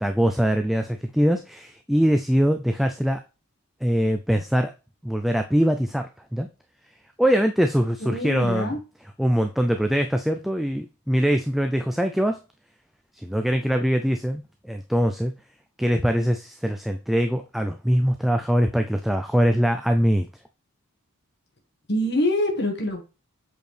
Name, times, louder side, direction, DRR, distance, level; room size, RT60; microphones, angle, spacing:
voice 1, 0.0-3.2 3.8-4.7 5.0-6.5 7.2-8.7 9.2-12.4 13.2-15.3 15.8-20.3, equal, ahead, 6 dB, 0.4 m, -22 dB
voice 2, 8.0-8.8 21.9-23.0, left 1 dB, 50° left, 2 dB, 1.6 m, -25 dB
8.0 x 4.5 x 3.3 m, 0.31 s
head